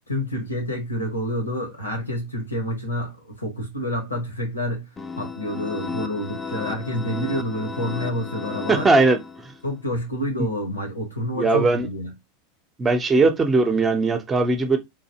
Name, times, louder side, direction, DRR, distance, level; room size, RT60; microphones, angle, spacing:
voice 1, 0.1-4.9 5.2-8.9 9.6-12.1, equal, 90° left, 1.1 m, -28 dB
sound 1, 5.0-9.7, left 5 dB, 20° left, 0.6 m, -34 dB
voice 2, 8.7-9.2 11.4-11.9 12.8-14.8, right 3 dB, 20° right, 0.7 m, -19 dB
3.8 x 2.7 x 2.8 m
figure-of-eight pair, 85°, 0 cm